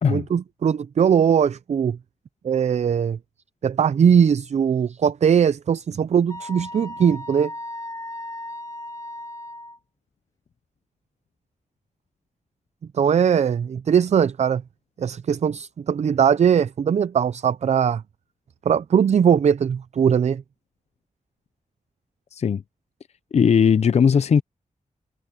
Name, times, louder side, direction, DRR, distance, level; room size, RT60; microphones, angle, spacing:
voice 1, 0.1-2.0 2.4-3.2 3.6-7.5 12.9-14.6 15.0-18.0 18.7-20.4, right 7 dB, 55° right, 0.4 m, -20 dB
Wind instrument woodwind instrument, 6.3-9.8, left 1 dB, 25° left, 2.2 m, -36 dB
voice 2, 22.3-22.6 23.3-24.4, left 7 dB, 55° left, 0.4 m, -18 dB
wide cardioid pair, 150°, 14 cm